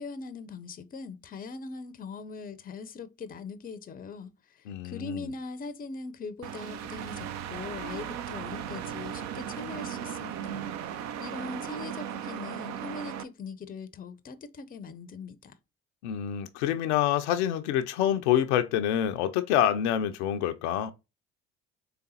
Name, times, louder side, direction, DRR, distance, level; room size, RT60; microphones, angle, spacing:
voice 1, 0.0-15.5, left 4 dB, 25° left, 0.6 m, -41 dB
voice 2, 4.7-5.3 16.0-20.9, left 10 dB, 70° left, 0.5 m, -27 dB
sound 1, 6.4-13.2, right 9 dB, 50° right, 0.5 m, -37 dB
3.9 x 3.5 x 2.8 m
figure-of-eight pair, 55°, 36 cm